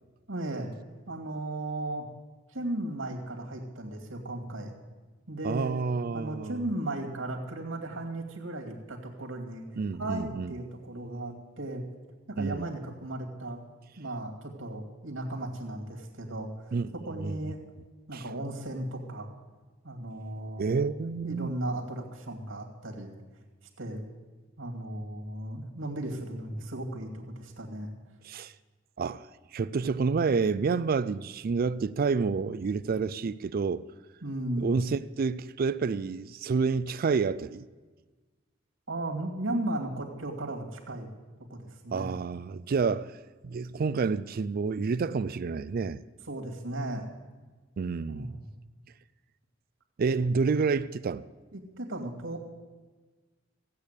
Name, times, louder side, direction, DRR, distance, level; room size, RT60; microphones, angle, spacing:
voice 1, 0.3-0.7 1.1-2.1 2.5-4.7 5.3-5.7 6.1-9.6 10.0-11.8 12.3-13.6 14.0-17.6 18.1-19.3 19.8-20.9 21.2-23.1 23.8-24.0 24.6-27.9 34.2-34.7 38.9-41.1 41.5-42.1 46.3-47.1 48.1-48.5 51.5-52.5, right 1 dB, 80° right, 2.4 m, -36 dB
voice 2, 5.4-6.6 9.8-10.5 12.4-12.7 16.7-16.9 17.2-17.4 18.1-18.2 20.6-21.5 28.2-28.5 29.0-29.3 29.5-33.8 34.6-37.6 41.9-43.1 43.4-46.0 47.8-48.4 50.0-51.2, right 5 dB, 50° right, 0.4 m, -29 dB
15.5 x 8.5 x 8.2 m
head